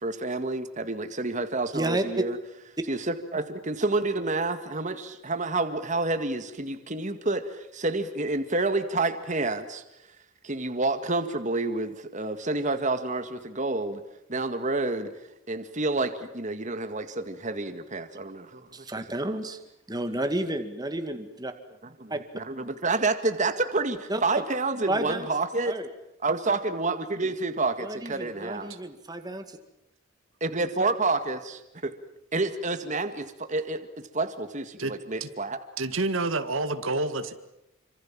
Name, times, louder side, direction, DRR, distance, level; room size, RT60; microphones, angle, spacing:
voice 1, 0.0-2.4 2.9-9.8 10.4-14.0 14.3-15.1 15.5-18.7 22.0-25.7 26.2-28.7 30.4-31.9 32.3-33.8 34.1-35.6, right 3 dB, 40° right, 9 dB, 1.9 m, -29 dB
voice 2, 1.7-2.0 18.7-19.6 19.9-21.5 22.1-22.2 24.1-24.2 24.9-25.3 25.7-25.9 26.5-26.6 27.8-29.6, right 1 dB, 20° right, 7 dB, 2.2 m, -31 dB
voice 3, 34.8-35.3 35.8-37.4, right 2 dB, 85° right, 9 dB, 2.0 m, -29 dB
27.5 x 26.0 x 7.5 m, 0.85 s
head